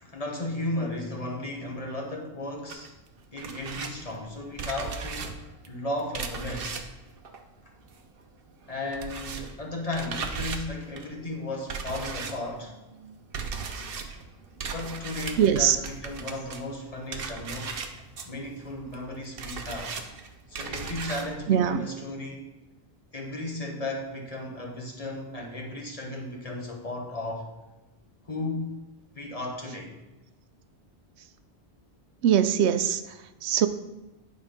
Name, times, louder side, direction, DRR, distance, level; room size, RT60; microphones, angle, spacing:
voice 1, 0.0-2.9 3.3-6.8 8.7-12.7 14.7-17.9 18.2-20.0 20.5-22.5 23.1-27.5 28.2-30.0, left 2 dB, 35° left, 0 dB, 1.4 m, -35 dB
sound 1, 2.7-8.2 8.5-21.3, right 5 dB, 60° right, 0.9 m, -38 dB
voice 2, 15.4-15.8 21.5-21.9 32.2-33.7, right 9 dB, 90° right, 10 dB, 0.9 m, -22 dB
9.5 x 4.0 x 5.1 m, 1.0 s
omnidirectional pair, 1.1 m